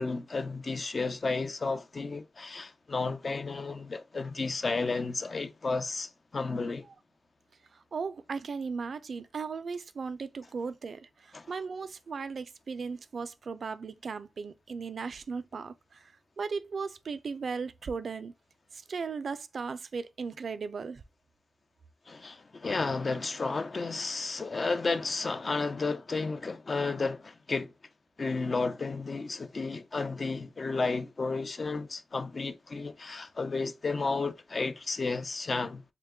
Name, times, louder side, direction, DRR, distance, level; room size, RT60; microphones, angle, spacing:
voice 1, 0.0-6.9 11.3-11.5 22.1-27.7 28.2-35.8, left 3 dB, 45° left, 0.4 m, -32 dB
voice 2, 7.7-18.3 18.7-21.0, right 5 dB, 60° right, 0.3 m, -37 dB
2.9 x 2.2 x 3.5 m
cardioid pair, 70°, 0 cm